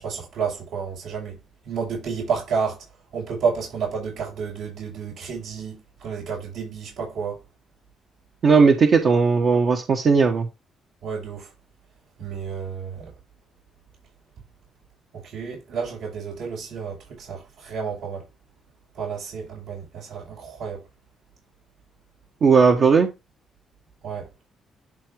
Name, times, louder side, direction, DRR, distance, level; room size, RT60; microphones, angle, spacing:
voice 1, 0.0-1.4 1.7-2.8 3.1-7.4 11.0-11.5 12.2-13.1 15.1-18.2 18.9-20.8 24.0-24.3, right 6 dB, 80° right, 5.3 m, -30 dB
voice 2, 8.4-10.5 22.4-23.1, right 5 dB, 55° right, 1.3 m, -17 dB
11.5 x 3.8 x 3.6 m
cardioid pair, 90°, 0 cm